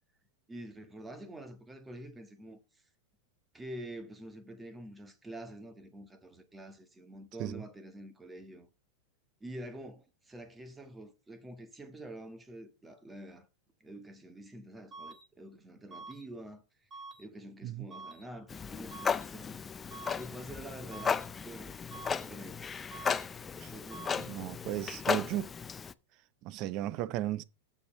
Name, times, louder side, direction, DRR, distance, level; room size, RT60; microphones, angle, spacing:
voice 1, 0.5-2.6 3.5-8.7 9.4-13.5 13.8-16.9 17.2-19.5 20.2-22.8 23.7-24.3, right 1 dB, 10° right, 1.5 m, -47 dB
sound 1, 14.9-15.2 15.9-16.2 16.9-17.2 17.9-18.2 18.9-19.2 19.9-20.2 20.9-21.2 21.9-22.2 22.9-23.2 23.9-24.2, right 3 dB, 30° right, 2.8 m, -47 dB
Clock, 18.5-25.9, left 6 dB, 20° left, 0.4 m, -35 dB
voice 2, 24.3-25.5 26.4-27.4, right 14 dB, 45° right, 0.6 m, -35 dB
7.1 x 6.9 x 4.3 m
hypercardioid pair, 120°, 0 cm